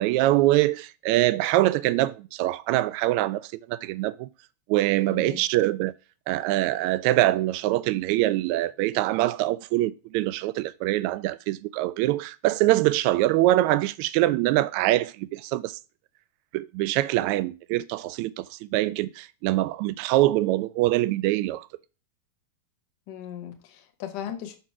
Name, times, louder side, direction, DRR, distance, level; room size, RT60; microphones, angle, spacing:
voice 1, 0.0-4.3 4.7-5.9 6.3-15.8 16.5-21.7, right 16 dB, 45° right, 0.3 m, -24 dB
voice 2, 5.1-5.4 23.1-24.6, left 10 dB, 45° left, 1.4 m, -37 dB
6.1 x 3.9 x 4.6 m
figure-of-eight pair, 90°, 0 cm